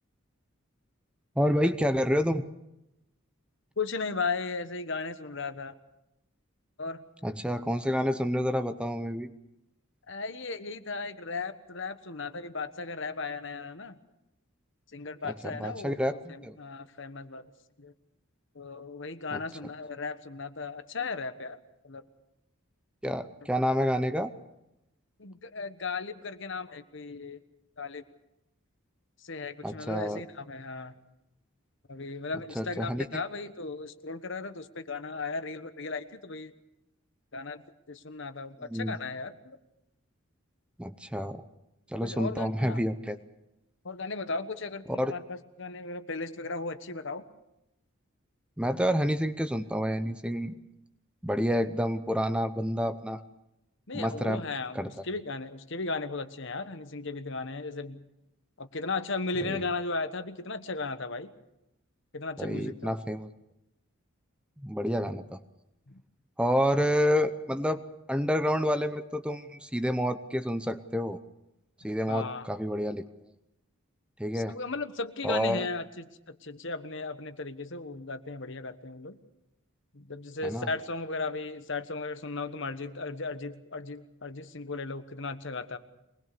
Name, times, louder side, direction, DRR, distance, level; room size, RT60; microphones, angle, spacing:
voice 1, 1.4-2.4 7.2-9.3 15.4-16.6 19.3-19.4 23.0-24.3 29.6-30.2 32.6-33.2 38.7-38.9 40.8-41.4 41.9-43.2 45.0-45.1 48.6-50.6 51.2-53.2 53.9-54.4 54.7-54.9 59.4-59.6 62.4-63.3 64.6-65.2 66.4-67.8 68.1-71.2 71.8-73.0 74.2-74.6 75.2-75.6 80.4-80.7, equal, 5° right, 10 dB, 0.7 m, -28 dB
voice 2, 3.8-5.7 6.8-7.0 10.1-14.0 14.9-17.5 17.8-17.9 18.5-21.6 21.8-22.0 25.2-27.4 27.8-28.0 29.2-30.9 31.9-36.5 37.3-39.6 42.0-42.8 43.8-47.3 53.9-58.0 58.6-61.3 62.1-62.9 65.9-66.0 72.1-72.6 74.3-79.2 79.9-85.8, left 3 dB, 60° left, 10 dB, 1.3 m, -36 dB
23.5 x 20.5 x 6.8 m, 0.88 s
head